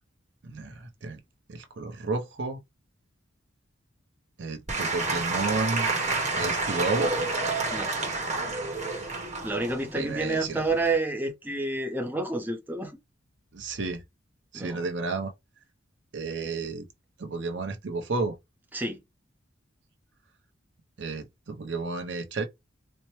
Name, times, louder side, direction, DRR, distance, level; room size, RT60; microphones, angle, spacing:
voice 1, 0.4-1.2 1.5-2.6 4.4-5.9 6.3-7.1 9.9-10.6 13.5-14.0 14.5-15.3 16.1-16.9 17.2-18.4 21.0-22.5, right 3 dB, 65° right, 0.7 m, -31 dB
Applause / Crowd, 4.7-11.0, right 3 dB, 35° right, 1.0 m, -29 dB
voice 2, 9.4-13.0 14.5-14.9 18.7-19.0, right 2 dB, 10° right, 0.5 m, -29 dB
4.3 x 2.1 x 3.0 m
head